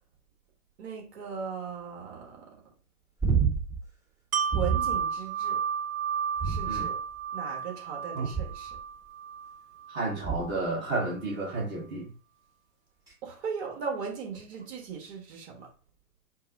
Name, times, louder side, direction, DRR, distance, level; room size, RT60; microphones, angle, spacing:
voice 1, 0.8-2.4 4.5-5.6 6.4-7.0 7.3-8.8 13.2-15.7, right 6 dB, 45° right, 0 dB, 1.5 m, -37 dB
sound 1, 3.2-3.8 4.5-5.0 6.4-7.1 8.3-8.8 10.2-10.7 13.1-13.2, right 6 dB, 10° right, 1.0 m, -28 dB
Wind chime, 4.3-10.1 10.5-10.6, right 7 dB, 65° right, 0.6 m, -32 dB
voice 2, 9.9-12.1, right 2 dB, 25° right, -5 dB, 1.3 m, -31 dB
4.5 x 2.0 x 4.1 m, 0.37 s
figure-of-eight pair, 110°, 45 cm